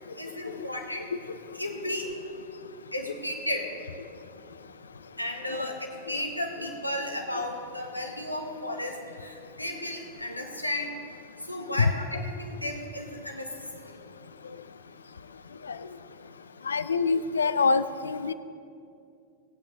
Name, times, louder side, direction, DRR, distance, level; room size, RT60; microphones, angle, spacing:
voice 1, 0.2-1.1 1.5-2.1 2.9-3.7 5.2-5.8 6.1-11.0 11.5-13.5 13.8-13.9, left 1 dB, 90° left, 3 dB, 1.2 m, -34 dB
voice 2, 16.7-18.3, left 4 dB, 70° left, 13 dB, 0.4 m, -24 dB
18.0 x 8.7 x 3.0 m, 2.4 s
figure-of-eight pair, 90°, 0 cm